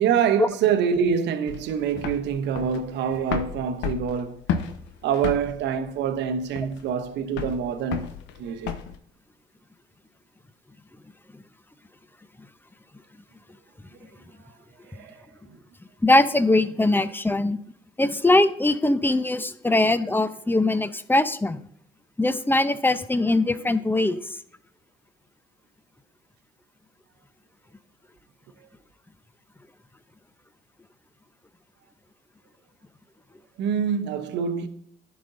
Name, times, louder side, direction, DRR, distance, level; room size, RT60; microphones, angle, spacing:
voice 1, 0.0-4.4 5.0-8.1 8.4-8.8 14.0-14.1 14.4-14.5 14.8-15.6 16.8-16.9 33.6-34.7, right 7 dB, 65° right, 1.0 m, -26 dB
sound 1, 1.5-9.0, left 8 dB, 70° left, 0.8 m, -33 dB
voice 2, 16.0-17.6 18.0-21.6 22.2-24.4, left 2 dB, 10° left, 0.8 m, -21 dB
15.0 x 5.4 x 2.7 m
hypercardioid pair, 50°, 19 cm